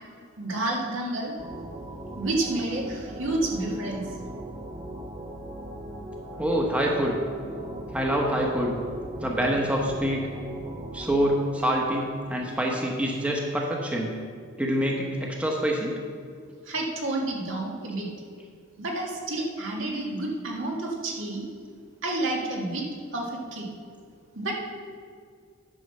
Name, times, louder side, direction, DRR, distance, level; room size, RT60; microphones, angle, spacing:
voice 1, 0.4-1.3 2.2-4.1 16.7-18.1 18.8-21.4 22.0-22.9 23.1-23.7 24.3-24.5, right 2 dB, 75° right, -1 dB, 1.8 m, -29 dB
sound 1, 1.4-11.4, right 1 dB, 30° right, 0.8 m, -39 dB
voice 2, 6.4-7.2 7.9-8.8 9.2-10.2 10.9-14.2 14.6-16.0, equal, 5° right, -1 dB, 0.9 m, -26 dB
9.8 x 5.7 x 6.5 m, 2.2 s
head